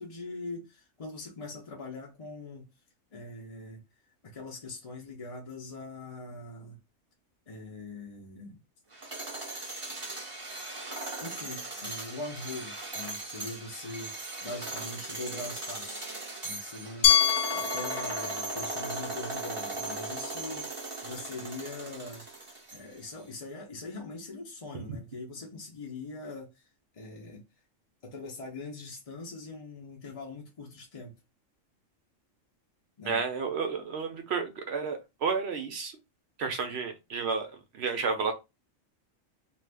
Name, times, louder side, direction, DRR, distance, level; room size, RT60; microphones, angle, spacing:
voice 1, 0.0-2.7 3.1-3.8 4.2-6.8 7.5-8.6 11.2-14.1 14.4-16.1 16.4-22.3 22.7-26.7 26.9-27.4 28.0-31.2 33.0-33.2, left 2 dB, 40° left, 0.5 m, -42 dB
sound 1, 8.9-23.1, right 2 dB, 30° right, 0.7 m, -38 dB
Glass, 17.0-19.9, left 9 dB, 85° left, 1.0 m, -28 dB
voice 2, 33.1-35.9 36.4-38.3, right 5 dB, 65° right, 0.7 m, -31 dB
2.5 x 2.4 x 3.3 m
omnidirectional pair, 1.4 m